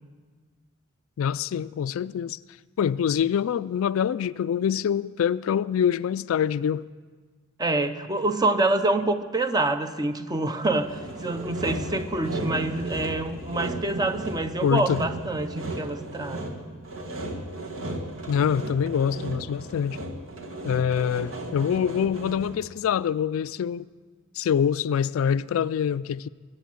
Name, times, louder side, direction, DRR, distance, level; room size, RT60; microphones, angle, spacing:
voice 1, 1.2-2.4 2.8-6.9 14.6-15.0 18.3-20.0 20.6-23.8 24.4-26.3, left 8 dB, 75° left, 0.3 m, -25 dB
voice 2, 7.6-16.5, right 2 dB, 20° right, 0.6 m, -26 dB
Sawing, 10.6-22.7, right 2 dB, 75° right, 1.7 m, -35 dB
22.5 x 7.5 x 6.3 m
head